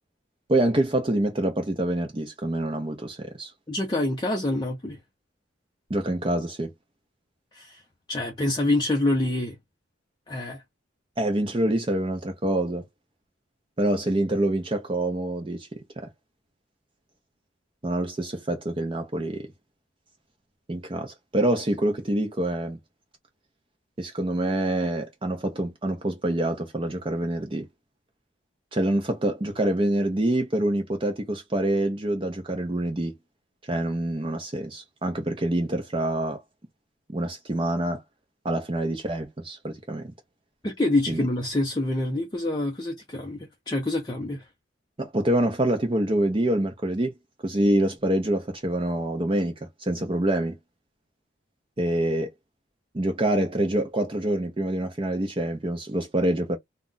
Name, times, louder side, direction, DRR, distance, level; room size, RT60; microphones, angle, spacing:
voice 1, 0.5-3.5 5.9-6.7 11.2-12.8 13.8-16.1 17.8-19.5 20.7-22.8 24.0-27.7 28.7-33.1 33.6-36.4 37.1-38.0 38.4-40.1 41.1-41.3 45.0-47.1 47.4-49.5 49.8-50.6 51.8-52.3 52.9-56.6, right 1 dB, 25° right, 0.5 m, -26 dB
voice 2, 3.7-5.0 7.5-7.8 8.1-9.6 10.3-10.6 40.6-44.5, left 2 dB, 20° left, 0.5 m, -26 dB
2.4 x 2.1 x 3.8 m
head